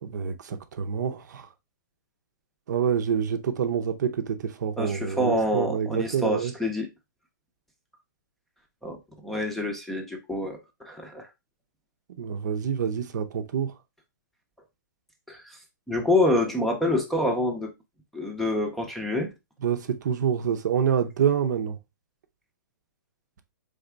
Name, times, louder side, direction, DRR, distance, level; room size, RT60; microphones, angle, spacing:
voice 1, 0.0-1.5 2.7-6.5 12.2-13.7 19.6-21.8, right 7 dB, 60° right, 0.7 m, -27 dB
voice 2, 4.8-6.9 8.8-9.0 9.2-11.3 15.3-15.6 15.9-17.7 18.1-19.3, left 1 dB, ahead, 0.6 m, -27 dB
4.0 x 3.5 x 3.3 m
hypercardioid pair, 145°, 11 cm